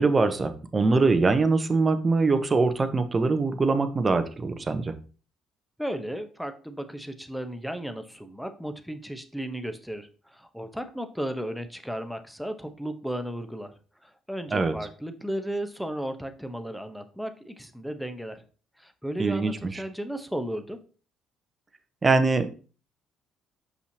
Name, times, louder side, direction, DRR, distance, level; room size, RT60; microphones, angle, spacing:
voice 1, 0.0-4.9 14.5-14.7 19.2-19.5 22.0-22.5, right 3 dB, 30° right, 9 dB, 0.9 m, -23 dB
voice 2, 5.8-13.7 14.0-18.4 18.8-20.8, equal, ahead, 7 dB, 1.0 m, -35 dB
6.5 x 5.5 x 2.9 m, 0.36 s
hypercardioid pair, 50°, 0 cm